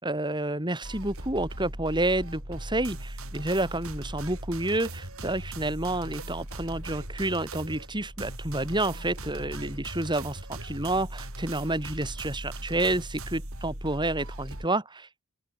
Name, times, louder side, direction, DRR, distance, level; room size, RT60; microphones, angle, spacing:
voice 1, 0.0-15.3, right 2 dB, 20° right, 5.2 m, -29 dB
sound 1, 0.8-14.7, right 1 dB, 70° right, 7.0 m, -39 dB
open air
head